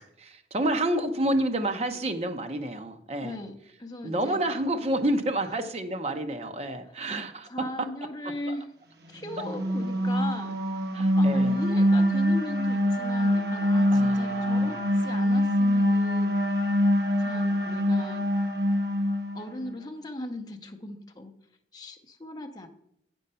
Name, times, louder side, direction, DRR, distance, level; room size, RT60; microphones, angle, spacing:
voice 1, 0.0-3.4 4.0-7.5 8.5-8.6 10.9-11.5 13.9-15.0, right 1 dB, 35° right, 7 dB, 0.7 m, -29 dB
voice 2, 3.2-4.4 5.5-5.6 7.0-8.7 9.1-10.6 11.0-16.4 17.2-18.3 19.3-21.3 21.7-22.7, left 1 dB, 20° left, 4 dB, 0.7 m, -38 dB
sound 1, 9.2-19.7, equal, 65° right, 1.1 m, -24 dB
8.5 x 5.4 x 5.5 m, 0.75 s
head